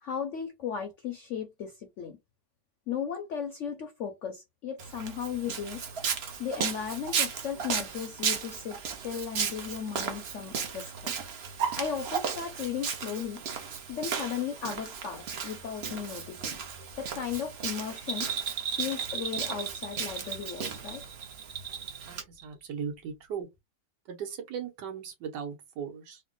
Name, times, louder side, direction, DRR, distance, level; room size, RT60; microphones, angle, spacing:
voice 1, 0.0-2.2 2.9-5.8 6.4-11.1 11.8-13.4 13.9-16.6 17.0-18.3 18.8-21.0, left 7 dB, 70° left, 0.7 m, -36 dB
Walk footsteps, 4.8-22.2, right 6 dB, 55° right, 0.7 m, -35 dB
Bell, 18.0-22.1 22.4-22.5, right 7 dB, 35° right, 1.1 m, -35 dB
voice 2, 22.1-23.5 24.1-26.2, right 7 dB, 80° right, 1.6 m, -38 dB
3.4 x 2.1 x 3.7 m
omnidirectional pair, 1.8 m